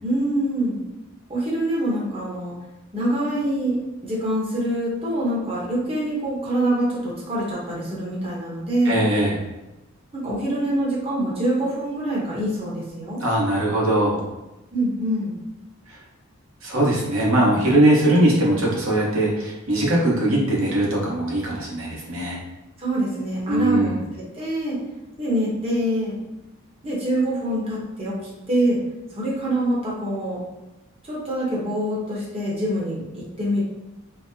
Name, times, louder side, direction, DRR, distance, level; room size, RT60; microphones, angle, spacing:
voice 1, 0.0-0.8 1.3-2.5 2.9-3.8 4.0-9.0 10.1-13.2 14.7-15.3 22.8-24.8 25.2-26.2 26.8-28.2 28.5-28.8 29.1-30.4 31.0-33.6, right 1 dB, 25° right, -5 dB, 0.9 m, -25 dB
voice 2, 8.9-9.3 13.2-14.2 16.6-22.4 23.5-24.0, right 1 dB, 70° right, -4 dB, 1.0 m, -20 dB
3.9 x 2.1 x 2.6 m, 0.99 s
head